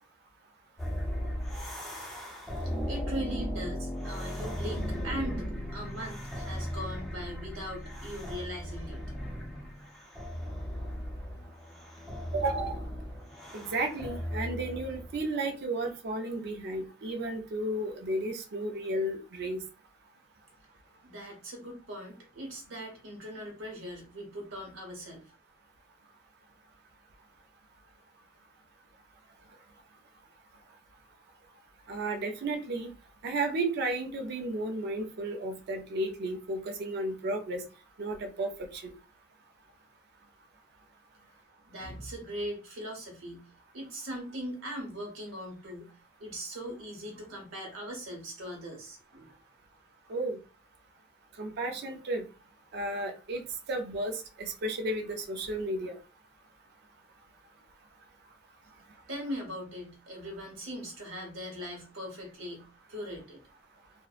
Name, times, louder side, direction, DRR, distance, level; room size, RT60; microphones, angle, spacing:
sound 1, 0.8-15.3, equal, ahead, 0.5 m, -37 dB
voice 1, 2.6-9.0 21.0-25.3 41.7-45.9 46.2-49.3 59.1-63.4, equal, 80° right, 1 dB, 0.9 m, -40 dB
voice 2, 12.3-12.8 13.5-19.6 31.9-32.9 33.2-37.6 38.0-38.9 50.1-50.4 51.4-52.3 52.7-53.4 53.7-56.0, right 2 dB, 55° right, 5 dB, 0.4 m, -33 dB
2.6 x 2.0 x 2.4 m, 0.33 s
head